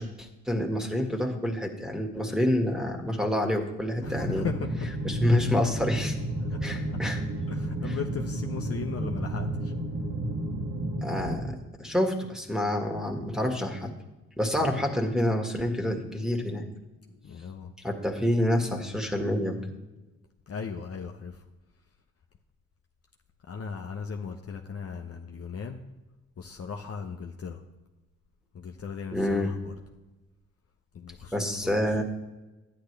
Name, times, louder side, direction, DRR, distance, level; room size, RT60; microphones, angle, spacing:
voice 1, 0.0-4.5 5.0-6.2 6.6-7.2 7.9-8.0 11.0-13.9 14.4-16.7 17.8-19.6 29.1-29.5 31.3-32.0, left 1 dB, ahead, 3 dB, 1.9 m, -28 dB
voice 2, 4.0-4.7 6.4-7.0 7.5-9.7 14.6-14.8 17.2-17.7 20.5-21.4 23.5-25.8 26.4-27.6 28.5-29.7 30.9-32.0, left 6 dB, 45° left, 3 dB, 0.9 m, -38 dB
sound 1, 4.0-11.4, right 1 dB, 40° right, 2.0 m, -32 dB
11.5 x 9.7 x 3.4 m, 1.1 s
hypercardioid pair, 50°, 35 cm